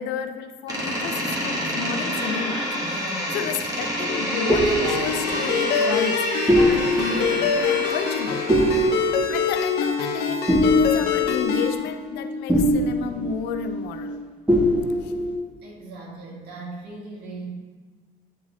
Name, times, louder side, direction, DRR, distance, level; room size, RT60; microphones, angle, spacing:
voice 1, 0.0-8.5 9.3-14.2 14.9-15.1, left 7 dB, 90° left, 8 dB, 0.5 m, -32 dB
Door, 0.7-9.2, equal, 20° right, 1.7 m, -28 dB
sound 1, 4.1-14.2 14.5-15.4, equal, 5° right, 0.9 m, -24 dB
Ringtone, 4.8-11.7, left 7 dB, 70° left, 0.8 m, -25 dB
voice 2, 15.6-17.5, right 3 dB, 70° right, -3 dB, 1.8 m, -38 dB
8.6 x 3.7 x 3.1 m, 1.5 s
cardioid pair, 110°, 17 cm